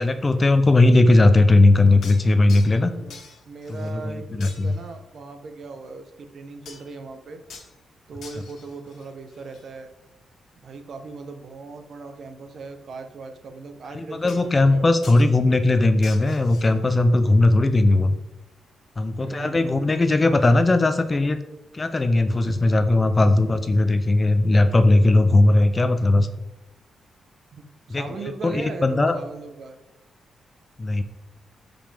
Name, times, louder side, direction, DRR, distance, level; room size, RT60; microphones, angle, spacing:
voice 1, 0.0-2.9 3.7-4.7 13.9-18.2 19.0-21.4 21.7-26.3 27.9-28.0 28.4-29.2 30.8-31.0, left 2 dB, 20° left, 10 dB, 0.5 m, -18 dB
sound 1, 2.0-2.8 3.1-4.0 4.4-5.0 6.6-7.0 7.5-7.8 8.2-9.6 14.3-14.7 15.0-15.3 16.0-16.7, left 5 dB, 65° left, 1.5 m, -45 dB
voice 2, 3.5-7.4 8.1-9.9 10.6-15.1 19.2-20.0 27.5-29.8, right 4 dB, 50° right, 7 dB, 0.9 m, -39 dB
13.0 x 5.2 x 3.5 m, 0.96 s
wide cardioid pair, 165°, 0 cm